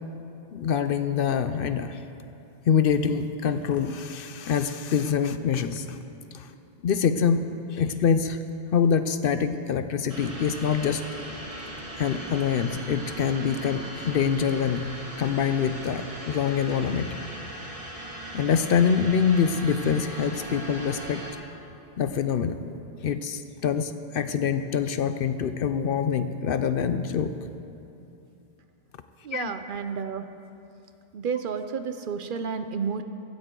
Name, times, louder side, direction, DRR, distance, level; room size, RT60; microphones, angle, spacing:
voice 1, 0.5-2.0 2.7-6.0 6.3-6.5 6.8-7.5 7.7-8.4 8.7-11.0 12.0-14.9 15.2-17.2 18.3-21.2 22.0-22.8 23.0-27.3 29.3-29.5, left 7 dB, 65° left, 10 dB, 0.7 m, -25 dB
sound 1, 10.1-21.3, right 1 dB, 35° right, 1.6 m, -39 dB
voice 2, 29.2-30.3 31.1-33.0, right 6 dB, 60° right, 9 dB, 0.7 m, -31 dB
16.0 x 14.0 x 3.8 m, 2.8 s
omnidirectional pair, 1.1 m